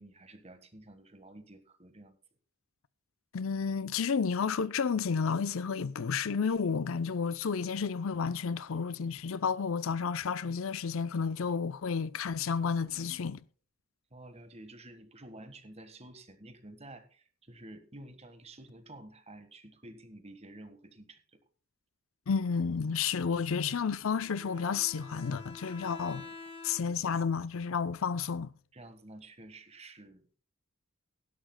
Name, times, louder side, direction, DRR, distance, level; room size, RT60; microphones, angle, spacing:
voice 1, 0.0-2.2 14.1-21.4 25.7-26.3 26.9-27.1 28.7-30.4, right 1 dB, 30° right, 1.4 m, -51 dB
voice 2, 3.3-13.4 22.3-26.2 26.6-28.5, left 6 dB, 70° left, 0.5 m, -31 dB
Scissors, 5.8-11.6 12.2-13.3, left 1 dB, 80° right, 4.8 m, -64 dB
Bowed string instrument, 24.1-27.2, left 4 dB, 25° left, 1.2 m, -48 dB
18.0 x 11.0 x 2.2 m
head